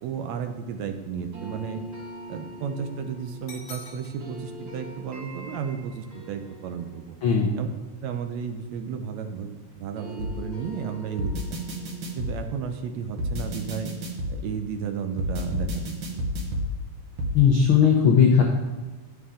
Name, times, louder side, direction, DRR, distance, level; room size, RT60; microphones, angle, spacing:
voice 1, 0.0-1.8 2.3-7.2 7.6-7.7 8.0-11.6 12.2-13.9 14.3-15.9 16.1-16.2, right 7 dB, 75° right, 6 dB, 1.8 m, -33 dB
sound 1, 1.3-9.4 9.7-14.7, equal, 35° right, 1.9 m, -45 dB
sound 2, 3.5-4.5, left 2 dB, 50° left, 1.5 m, -43 dB
sound 3, 10.2-10.3 11.2-12.3 13.2-14.3 15.2-16.7 17.2-17.3, equal, 55° right, 1.7 m, -29 dB
voice 2, 17.3-18.4, left 7 dB, 75° left, 0 dB, 1.2 m, -17 dB
10.5 x 7.0 x 3.7 m, 1.3 s
omnidirectional pair, 3.4 m